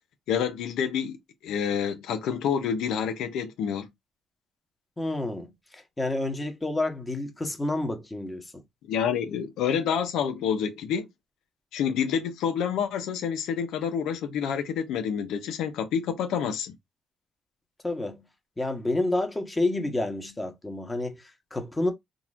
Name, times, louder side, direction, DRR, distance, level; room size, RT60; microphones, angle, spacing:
voice 1, 0.3-1.2 1.4-3.9 8.9-11.1 11.7-16.7, left 7 dB, 85° left, 0.6 m, -28 dB
voice 2, 5.0-8.6 17.8-18.2 18.6-21.9, left 2 dB, 15° left, 1.1 m, -29 dB
3.8 x 2.9 x 2.4 m
cardioid pair, 90°, 0 cm